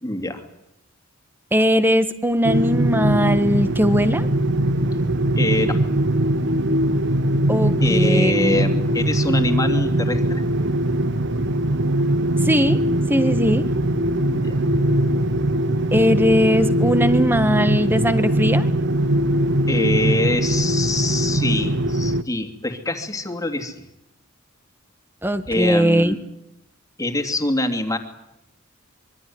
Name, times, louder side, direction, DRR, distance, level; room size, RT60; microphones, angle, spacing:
voice 1, 0.0-0.4 5.4-5.8 7.8-10.4 14.3-14.5 19.7-23.7 25.5-26.2 27.0-28.0, left 2 dB, 15° left, 5 dB, 2.8 m, -24 dB
voice 2, 1.5-4.3 7.5-8.6 12.4-12.8 13.1-13.7 15.9-18.7 25.2-26.1, equal, 10° right, 11 dB, 1.7 m, -19 dB
sound 1, 2.4-22.2, right 1 dB, 55° right, 1.0 m, -21 dB
26.0 x 23.5 x 9.6 m, 0.82 s
head